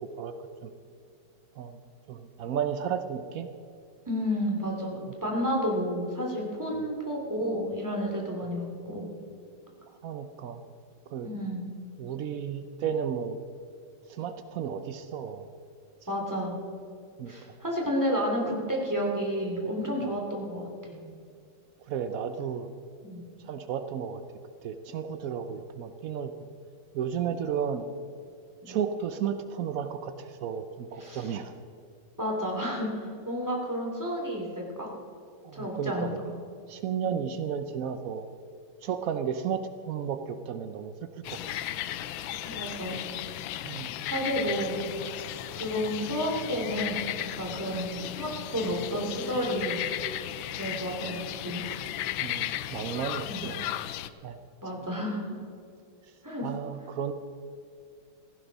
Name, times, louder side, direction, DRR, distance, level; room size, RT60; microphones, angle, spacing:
voice 1, 2.1-3.5 6.7-6.9 10.0-10.6 11.1-11.3 12.0-13.4 14.1-15.5 17.2-17.3 20.0-20.2 21.9-22.7 23.5-24.2 24.6-26.3 26.9-27.8 28.7-31.5 35.4-36.2 36.7-38.3 38.8-39.6 39.9-40.9 41.3-41.4 43.6-43.9 52.2-53.8 54.2-54.4 56.4-57.1, right 8 dB, 85° right, 9 dB, 0.7 m, -33 dB
voice 2, 4.1-9.1 11.2-11.7 16.1-16.5 17.3-20.7 23.0-23.2 28.7-28.8 31.0-31.4 32.2-34.9 35.5-36.3 37.0-37.2 42.4-43.0 44.0-44.9 45.5-49.8 50.5-51.7 53.3-53.4 54.6-55.4 56.2-56.5, equal, 10° right, -1 dB, 2.7 m, -31 dB
sound 1, 41.2-54.1, left 13 dB, 75° left, 1.3 m, -35 dB
17.0 x 15.0 x 4.1 m, 2.4 s
omnidirectional pair, 2.3 m